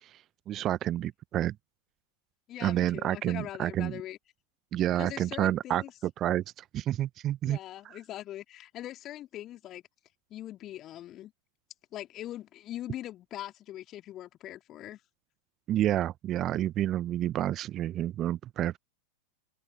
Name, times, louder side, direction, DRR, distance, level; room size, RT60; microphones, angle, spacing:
voice 1, 0.5-1.5 2.6-4.0 4.7-5.8 6.2-6.4 6.7-7.6 7.8-7.9 15.7-18.8, right 12 dB, 30° right, 1.1 m, -29 dB
voice 2, 2.5-4.2 4.9-5.9 7.4-9.8 10.3-11.3 11.9-15.0, left 13 dB, 30° left, 3.1 m, -41 dB
open air
figure-of-eight pair, 90°, 0 cm